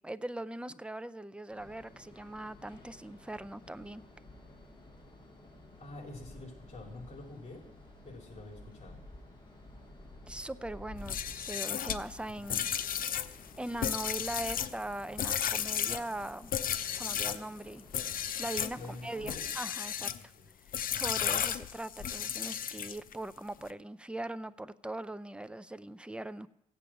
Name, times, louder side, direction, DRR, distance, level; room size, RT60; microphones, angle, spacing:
voice 1, 0.0-4.0 10.3-12.7 13.6-16.5 16.9-17.8 18.4-20.1 20.9-26.5, right 1 dB, 5° right, 13 dB, 0.6 m, -40 dB
sound 1, 1.5-19.6, left 1 dB, 30° left, 7.0 m, -53 dB
voice 2, 5.8-7.7 8.1-9.0 18.7-19.5 20.1-20.5, left 2 dB, 50° left, 1 dB, 3.9 m, -47 dB
sound 2, 11.0-17.4 17.9-18.8 19.2-20.2 20.7-23.1, left 9 dB, 70° left, 0.7 m, -34 dB
16.0 x 8.6 x 6.0 m, 0.84 s
cardioid pair, 70°, 15 cm